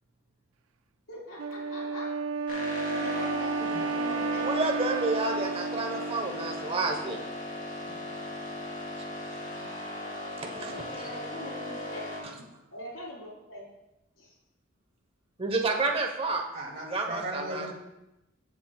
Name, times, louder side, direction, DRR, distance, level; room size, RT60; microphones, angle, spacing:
voice 1, 1.1-2.1 2.9-4.5 10.5-12.0 12.7-13.7 14.2-14.3, left 1 dB, 80° left, -6 dB, 4.0 m, -42 dB
Wind instrument woodwind instrument, 1.4-6.8, right 4 dB, 90° right, 0.5 m, -32 dB
sound 1, 2.5-12.2, left 1 dB, 45° left, 3.1 m, -37 dB
voice 2, 4.4-7.2 10.4-10.9 15.4-16.4 16.8-17.7, right 3 dB, 30° right, 2 dB, 1.2 m, -30 dB
voice 3, 16.5-17.7, right 1 dB, 50° right, -2 dB, 2.6 m, -38 dB
18.5 x 7.5 x 2.4 m, 0.93 s
head